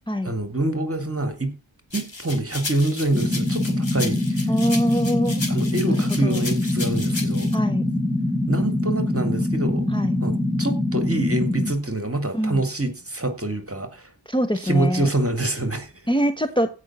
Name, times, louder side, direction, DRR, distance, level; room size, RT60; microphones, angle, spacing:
voice 1, 0.2-1.5 1.9-4.5 5.5-7.5 8.5-9.9 10.2-14.1 14.6-15.9, right 2 dB, 30° right, 2.3 m, -26 dB
sound 1, 1.9-7.5, left 2 dB, 65° left, 2.9 m, -34 dB
sound 2, 3.1-11.7, left 1 dB, 10° right, 2.1 m, -24 dB
voice 2, 4.5-5.4 5.9-6.5 7.5-7.9 9.9-10.2 12.3-12.6 14.3-15.1 16.1-16.7, equal, 10° left, 1.1 m, -24 dB
16.0 x 5.6 x 6.0 m
wide cardioid pair, 40°, 48 cm